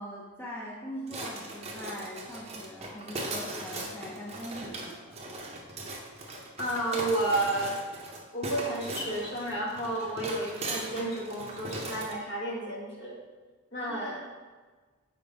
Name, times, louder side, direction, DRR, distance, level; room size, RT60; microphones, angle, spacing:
voice 1, 0.0-5.1 13.8-14.2, equal, 10° left, -6 dB, 0.6 m, -42 dB
sound 1, 1.1-12.2, right 2 dB, 30° right, 0.7 m, -39 dB
voice 2, 6.6-7.8 8.3-13.2 13.7-14.4, right 1 dB, 55° left, -3 dB, 1.4 m, -31 dB
5.2 x 4.5 x 4.0 m, 1.4 s
head